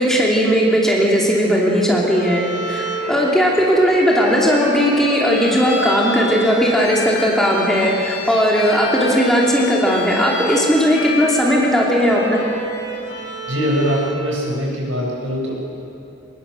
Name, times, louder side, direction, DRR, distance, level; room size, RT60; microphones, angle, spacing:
voice 1, 0.0-12.4, equal, ahead, -4 dB, 2.9 m, -17 dB
Bowed string instrument, 2.1-14.2, left 1 dB, 85° left, 6.1 m, -29 dB
voice 2, 13.5-15.5, equal, 90° right, -3 dB, 6.6 m, -22 dB
24.0 x 20.0 x 6.5 m, 2.9 s
head